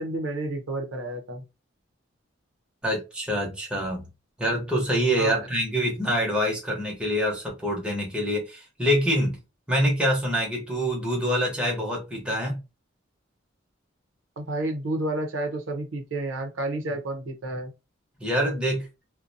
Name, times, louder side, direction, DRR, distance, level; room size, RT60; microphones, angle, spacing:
voice 1, 0.0-1.4 5.2-5.5 14.4-17.7, right 2 dB, 85° right, 0.7 m, -30 dB
voice 2, 2.8-4.0 4.4-9.4 9.7-12.6 18.2-18.9, equal, 5° right, 0.8 m, -25 dB
2.5 x 2.2 x 2.6 m
head